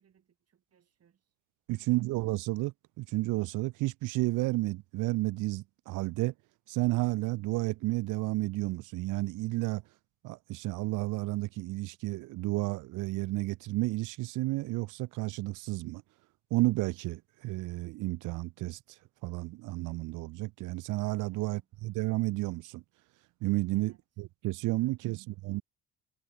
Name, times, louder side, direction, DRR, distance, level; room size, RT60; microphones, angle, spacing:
voice 1, 0.0-1.3 1.7-2.0 21.3-21.7 23.7-24.0 24.8-25.3, right 8 dB, 55° right, 4.9 m, -66 dB
voice 2, 1.7-6.3 6.7-9.8 10.2-16.0 16.5-18.8 19.2-22.8 23.4-25.6, right 20 dB, 90° right, 0.5 m, -32 dB
cardioid pair, 90°, 30 cm